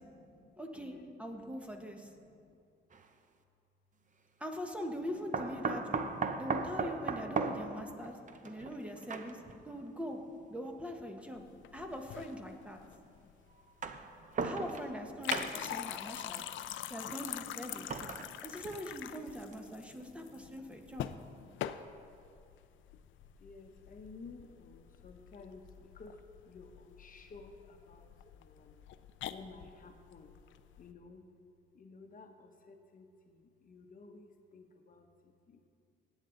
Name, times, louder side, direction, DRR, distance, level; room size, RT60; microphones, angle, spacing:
voice 1, 0.0-1.3 1.7-2.6 5.3-6.5 6.8-10.2 10.5-10.7 11.0-11.9 12.6-13.3 14.5-17.0 17.4-18.4 19.1-21.8 23.1-26.2 26.4-28.8 29.3-30.3 30.8-31.2 31.7-35.7, left 3 dB, 45° left, 4 dB, 1.0 m, -57 dB
voice 2, 0.6-2.1 4.4-6.1 6.4-8.2 8.4-9.4 9.7-10.2 10.5-11.4 11.7-12.8 14.4-16.4 16.9-17.9 18.4-21.1, equal, 5° right, 3 dB, 1.2 m, -42 dB
sound 1, 2.9-3.0 5.3-9.6 10.6-10.7 11.9-12.0 13.6-15.0 15.3-15.8 17.6-19.0 19.5-19.6 20.0-20.1, right 4 dB, 40° right, 0.8 m, -37 dB
sound 2, 11.4-30.9, left 11 dB, 75° left, 0.5 m, -45 dB
17.0 x 8.2 x 3.9 m, 2.4 s
cardioid pair, 90°, 20 cm